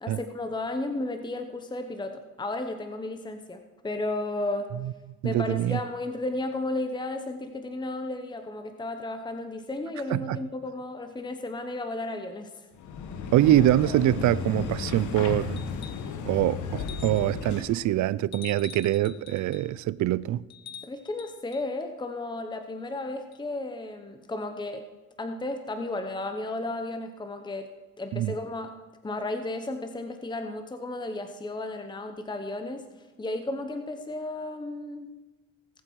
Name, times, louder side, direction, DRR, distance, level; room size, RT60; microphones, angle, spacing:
voice 1, 0.0-4.7 5.2-12.7 20.8-24.8 25.2-27.7 28.0-28.7 29.0-32.8 33.2-35.1, left 2 dB, 15° left, 0.9 m, -33 dB
voice 2, 5.2-5.8 10.1-10.4 13.3-15.6 16.2-20.4 28.1-28.3, right 14 dB, 70° right, 0.5 m, -24 dB
sound 1, 12.8-17.8, left 5 dB, 80° left, 1.3 m, -34 dB
sound 2, 15.6-16.1 16.8-17.4 18.3-19.7 20.5-21.7 23.3-23.4, left 8 dB, 65° left, 0.9 m, -46 dB
19.0 x 7.7 x 4.7 m
cardioid pair, 90°, 30 cm